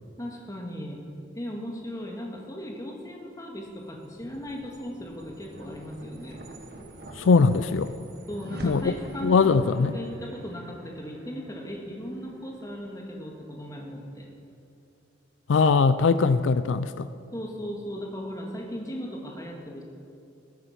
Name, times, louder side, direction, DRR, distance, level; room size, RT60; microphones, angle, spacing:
voice 1, 0.2-1.0 1.4-6.4 8.3-14.3 17.3-19.8, equal, 20° left, 0 dB, 1.8 m, -37 dB
sound 1, 3.5-14.1, right 1 dB, 55° right, 1.4 m, -46 dB
voice 2, 7.2-7.9 8.6-8.9 9.2-9.9 15.5-17.1, left 4 dB, 85° left, 13 dB, 0.4 m, -21 dB
20.0 x 8.1 x 5.9 m, 2.6 s
head